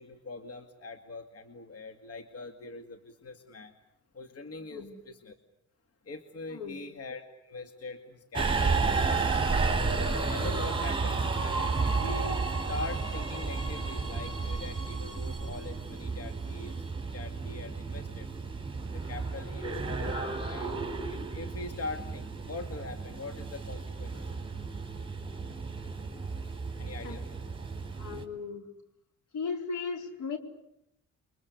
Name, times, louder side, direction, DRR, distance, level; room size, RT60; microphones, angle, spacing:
voice 1, 0.0-3.7 4.1-5.4 6.1-9.4 10.3-16.9 17.1-18.3 18.9-20.1 20.4-24.3 26.8-27.3, left 3 dB, 50° left, 7 dB, 2.2 m, -43 dB
Subway metro underground, 8.3-28.2, right 4 dB, 15° right, 4.2 m, -32 dB
voice 2, 28.0-28.7 29.3-30.4, left 5 dB, 75° left, 5 dB, 4.5 m, -36 dB
29.5 x 23.5 x 8.3 m, 0.80 s
cardioid pair, 90°, 30 cm